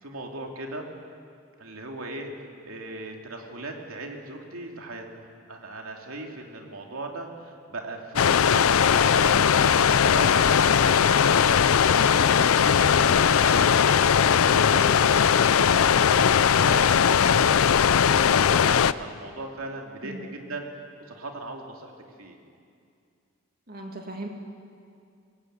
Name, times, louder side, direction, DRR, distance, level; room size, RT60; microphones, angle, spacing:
voice 1, 0.0-0.9 1.6-2.3 2.6-11.4 11.7-20.7 21.1-21.9 22.2-22.4, right 2 dB, 80° right, 1 dB, 2.8 m, -38 dB
sound 1, 8.2-18.9, left 7 dB, 80° left, 0.5 m, -19 dB
voice 2, 23.7-24.3, right 1 dB, 45° right, 2 dB, 2.5 m, -37 dB
24.5 x 18.0 x 8.1 m, 2.4 s
head